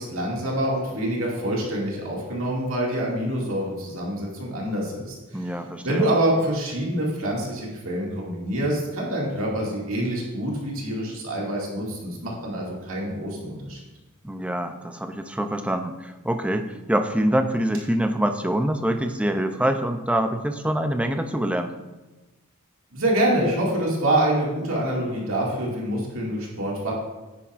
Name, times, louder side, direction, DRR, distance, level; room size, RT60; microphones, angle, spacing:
voice 1, 0.0-5.4 5.8-13.8 22.9-26.9, right 1 dB, 65° right, -4 dB, 2.3 m, -26 dB
voice 2, 5.3-6.1 14.2-21.7, right 1 dB, 5° right, 7 dB, 0.5 m, -25 dB
10.0 x 9.7 x 2.5 m, 1.1 s
head